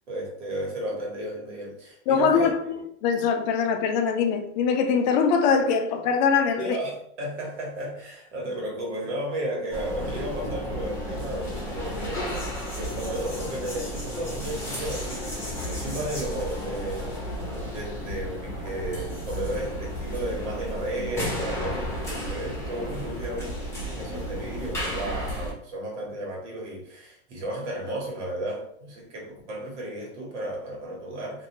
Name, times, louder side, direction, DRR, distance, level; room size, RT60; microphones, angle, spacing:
voice 1, 0.1-2.5 6.6-12.5 12.7-23.5 23.9-31.5, right 1 dB, 85° right, 1.5 m, -34 dB
voice 2, 2.1-6.8, left 6 dB, 40° left, 0.4 m, -23 dB
sound 1, 9.7-25.5, equal, 10° left, 0.8 m, -33 dB
2.6 x 2.4 x 2.9 m
supercardioid pair, 145°, 35 cm